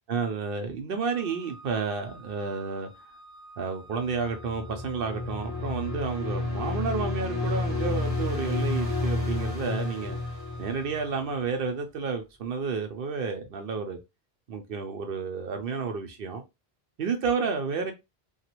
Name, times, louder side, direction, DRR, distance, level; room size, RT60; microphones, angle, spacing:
voice 1, 0.1-2.9 3.6-10.2 10.6-14.0 14.5-16.4 17.0-17.9, right 5 dB, 65° right, 0.7 m, -31 dB
Organ, 1.0-11.8, right 1 dB, 50° left, 0.6 m, -50 dB
sound 1, 4.0-11.3, left 3 dB, 15° left, 1.2 m, -31 dB
2.9 x 2.3 x 2.9 m
omnidirectional pair, 1.0 m